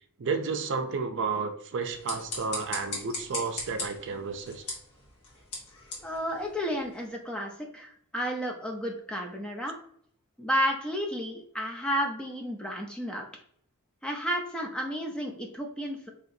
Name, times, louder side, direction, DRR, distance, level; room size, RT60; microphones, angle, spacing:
voice 1, 0.2-4.6, right 4 dB, 55° right, 6 dB, 0.5 m, -31 dB
sound 1, 1.8-7.1, left 2 dB, 80° left, 1.3 m, -40 dB
voice 2, 6.0-9.8 10.4-13.3 14.0-16.1, equal, 5° left, 0 dB, 0.5 m, -32 dB
4.0 x 2.9 x 2.7 m, 0.63 s
head